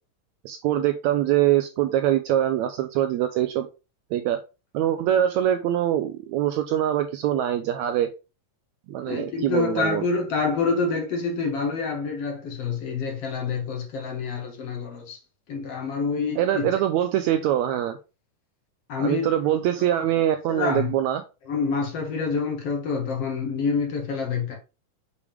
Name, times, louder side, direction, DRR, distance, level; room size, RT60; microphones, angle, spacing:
voice 1, 0.4-3.7 4.1-4.4 4.7-8.1 8.9-10.1 16.4-18.0 19.0-21.2, right 11 dB, 80° right, 1.7 m, -23 dB
voice 2, 9.1-15.2 15.5-16.7 18.9-19.3 20.5-20.9 21.5-24.6, left 4 dB, 60° left, 1.9 m, -27 dB
6.9 x 4.9 x 3.4 m
omnidirectional pair, 3.7 m